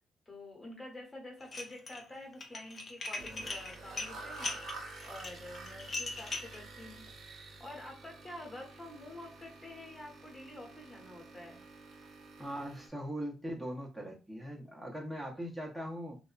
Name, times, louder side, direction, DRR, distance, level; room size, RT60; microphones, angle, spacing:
voice 1, 0.3-4.5 5.0-11.6, left 1 dB, 20° left, 0 dB, 1.1 m, -48 dB
Dishes pots and pans, 1.4-2.0 2.3-6.6, left 3 dB, 40° left, 0.5 m, -40 dB
sound 1, 3.2-12.9, right 3 dB, 70° right, 0.7 m, -49 dB
voice 2, 12.4-16.2, equal, 5° left, 0 dB, 0.8 m, -40 dB
2.7 x 2.1 x 2.4 m, 0.31 s
cardioid pair, 90°, 0 cm